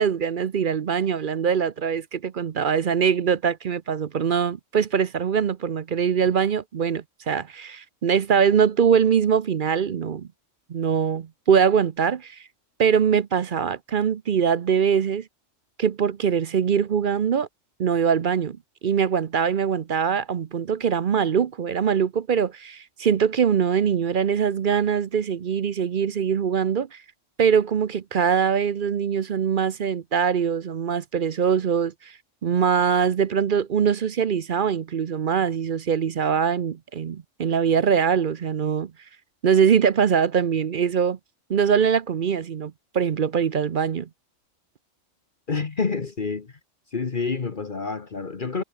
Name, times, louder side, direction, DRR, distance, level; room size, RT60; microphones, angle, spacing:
voice 1, 0.0-10.3 10.7-12.4 12.8-15.3 15.8-17.5 17.8-18.6 18.8-27.0 27.4-32.1 32.4-38.9 39.4-41.2 41.5-44.1, right 7 dB, 50° right, 0.7 m, -22 dB
voice 2, 45.5-46.5 46.9-48.6, left 4 dB, 40° left, 1.3 m, -28 dB
omnidirectional pair, 1.3 m